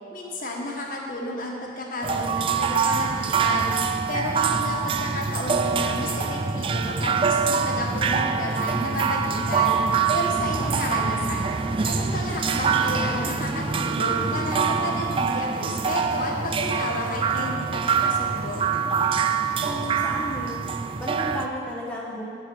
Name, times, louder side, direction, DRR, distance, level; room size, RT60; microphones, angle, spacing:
voice 1, 0.1-3.7 4.1-9.8 10.1-11.5 11.8-18.6, left 1 dB, 45° left, -2 dB, 1.4 m, -32 dB
sound 1, 2.0-21.5, right 5 dB, 30° right, 0.3 m, -25 dB
voice 2, 10.6-10.9 19.6-20.7 21.0-22.3, equal, 5° left, -4 dB, 0.9 m, -33 dB
8.5 x 5.8 x 7.7 m, 2.3 s
head